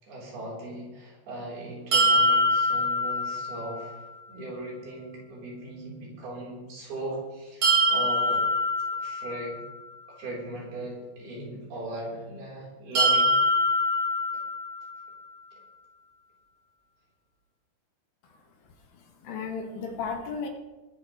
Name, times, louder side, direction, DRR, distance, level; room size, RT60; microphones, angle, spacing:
voice 1, 0.0-8.4 8.9-9.6 10.1-13.3, right 1 dB, 75° right, -4 dB, 6.2 m, -38 dB
sound 1, 1.9-3.9 7.6-9.7 13.0-15.0, equal, 45° right, 5.0 m, -24 dB
voice 2, 18.9-20.5, left 5 dB, 70° left, 2 dB, 3.5 m, -35 dB
21.5 x 11.0 x 3.3 m, 1.1 s
omnidirectional pair, 4.5 m